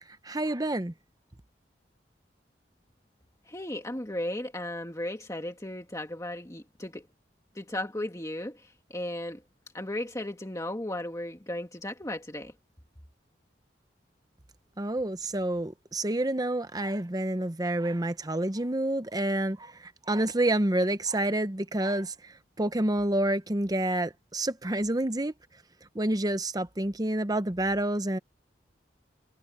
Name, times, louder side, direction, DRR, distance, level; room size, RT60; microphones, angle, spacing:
voice 1, 0.2-0.9 14.8-19.7 20.1-22.1 22.6-25.3 25.9-28.2, right 1 dB, 20° right, 0.9 m, -28 dB
voice 2, 3.5-7.1 7.6-9.4 9.7-12.5, left 1 dB, 20° left, 2.0 m, -35 dB
head